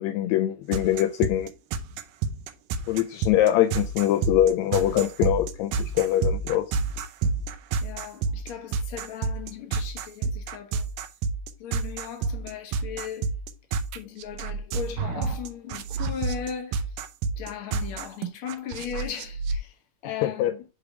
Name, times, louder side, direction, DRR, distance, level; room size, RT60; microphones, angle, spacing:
voice 1, 0.0-1.5 2.9-6.7 20.2-20.5, left 12 dB, 85° left, 1.6 m, -23 dB
sound 1, 0.7-19.6, right 4 dB, 80° right, 2.2 m, -29 dB
voice 2, 7.8-10.9 11.6-13.3 13.9-17.0 17.4-20.6, left 8 dB, 55° left, 1.6 m, -37 dB
8.2 x 3.4 x 4.7 m
omnidirectional pair, 3.7 m